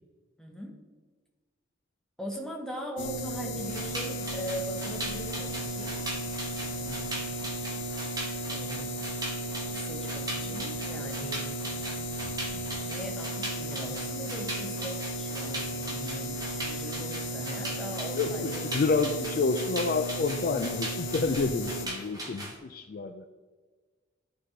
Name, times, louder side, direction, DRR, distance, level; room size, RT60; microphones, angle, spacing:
voice 1, 0.4-0.8 2.2-5.9 6.7-7.3 8.5-8.9 9.7-11.8 12.9-18.6, equal, 5° left, 0 dB, 0.9 m, -40 dB
sound 1, 3.0-21.9, equal, 65° left, 0.7 m, -35 dB
sound 2, 3.6-22.6, right 1 dB, 20° right, 1.1 m, -40 dB
voice 2, 18.1-23.3, left 4 dB, 45° left, 8 dB, 0.3 m, -29 dB
11.5 x 4.0 x 3.2 m, 1.4 s
head